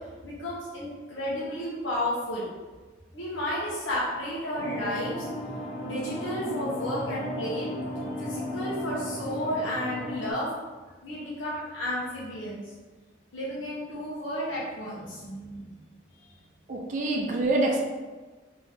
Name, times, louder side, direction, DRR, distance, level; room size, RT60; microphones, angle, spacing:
voice 1, 0.2-2.5 3.1-5.3 5.8-7.7 8.2-10.5 11.0-12.6 13.3-15.7 16.2-16.3, equal, 85° left, -8 dB, 1.0 m, -32 dB
sound 1, 4.6-10.3, left 1 dB, 45° left, 0.8 m, -35 dB
voice 2, 16.7-17.8, right 2 dB, 40° right, 0 dB, 0.5 m, -26 dB
3.5 x 2.9 x 3.6 m, 1.3 s
head